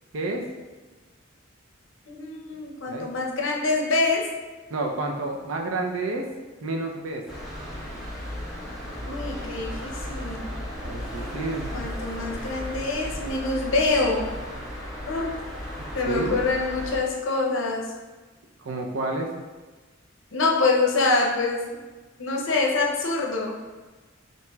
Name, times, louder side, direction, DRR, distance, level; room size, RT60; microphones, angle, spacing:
voice 1, 2.1-4.3 9.1-10.6 11.7-14.3 15.1-15.4 15.9-17.9 20.3-21.7 22.2-23.5, left 3 dB, 70° left, -1 dB, 0.7 m, -25 dB
voice 2, 4.7-6.2 6.6-7.2 10.8-11.9 16.1-16.4 18.6-19.3, right 2 dB, 85° right, 2 dB, 0.6 m, -29 dB
sound 1, 7.3-17.0, equal, ahead, 1.2 m, -35 dB
5.8 x 2.9 x 2.3 m, 1.3 s
head